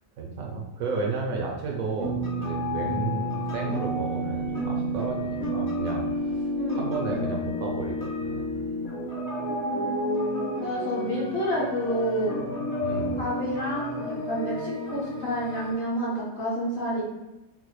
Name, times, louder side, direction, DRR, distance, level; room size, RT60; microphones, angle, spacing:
voice 1, 0.2-6.4 6.7-8.7 12.8-13.2, right 4 dB, 70° right, 0 dB, 0.9 m, -33 dB
sound 1, 2.0-15.7, equal, 85° left, 0.3 m, -30 dB
voice 2, 9.6-12.4 13.2-17.0, equal, 50° left, -6 dB, 0.9 m, -29 dB
4.0 x 2.0 x 3.1 m, 0.98 s
omnidirectional pair, 1.7 m